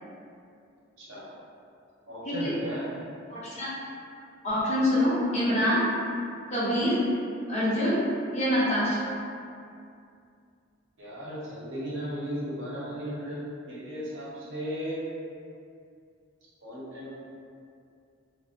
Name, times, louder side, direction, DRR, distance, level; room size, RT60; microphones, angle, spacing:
voice 1, 1.0-1.3 2.1-2.9 11.0-15.0 16.6-17.1, equal, 60° right, -8 dB, 0.7 m, -36 dB
voice 2, 3.3-3.7 4.4-5.8 6.5-7.0 7.5-8.0 8.3-9.0, left 1 dB, 35° left, -9 dB, 0.6 m, -25 dB
2.6 x 2.0 x 2.4 m, 2.4 s
head